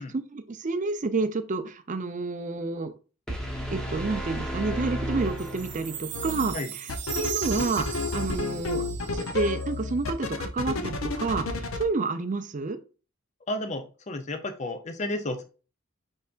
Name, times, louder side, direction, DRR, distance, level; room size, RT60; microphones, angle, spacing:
voice 1, 0.0-2.9 3.7-6.9 7.1-8.9 9.1-12.8, right 3 dB, 35° right, 0.5 m, -29 dB
sound 1, 3.3-6.3, equal, 5° left, 0.8 m, -33 dB
Chime, 5.4-9.8, right 9 dB, 55° right, 0.9 m, -37 dB
sound 2, 6.1-6.5 6.9-11.8, left 3 dB, 75° left, 0.7 m, -31 dB
voice 2, 13.5-15.4, left 1 dB, 35° left, 0.5 m, -32 dB
5.4 x 3.3 x 2.4 m
head